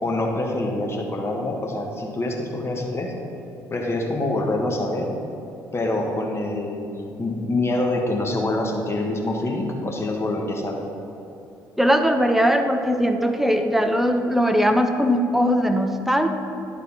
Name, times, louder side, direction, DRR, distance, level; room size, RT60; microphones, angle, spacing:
voice 1, 0.0-3.1 3.7-5.1 5.7-6.9 7.2-10.8, left 2 dB, 30° left, 1 dB, 1.5 m, -25 dB
voice 2, 11.8-16.3, equal, 5° right, 6 dB, 0.8 m, -20 dB
10.5 x 4.1 x 5.5 m, 2.7 s
hypercardioid pair, 55°, 9 cm